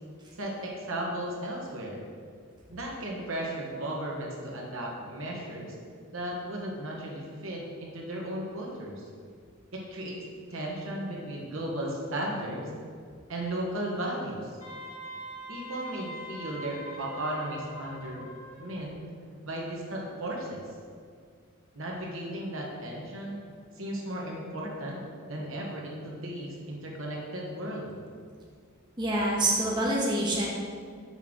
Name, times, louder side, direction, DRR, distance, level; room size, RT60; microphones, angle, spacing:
voice 1, 0.4-2.0 2.7-5.7 6.1-9.0 9.7-10.2 10.5-12.7 13.3-14.5 15.5-18.3 18.6-19.1 19.4-20.6 21.7-23.4 23.7-28.0, right 1 dB, 70° right, -2 dB, 1.2 m, -35 dB
Wind instrument woodwind instrument, 14.6-18.8, equal, 85° left, 1.7 m, -43 dB
voice 2, 29.0-30.5, right 1 dB, 20° right, -4 dB, 0.9 m, -26 dB
5.8 x 3.7 x 6.0 m, 2.1 s
head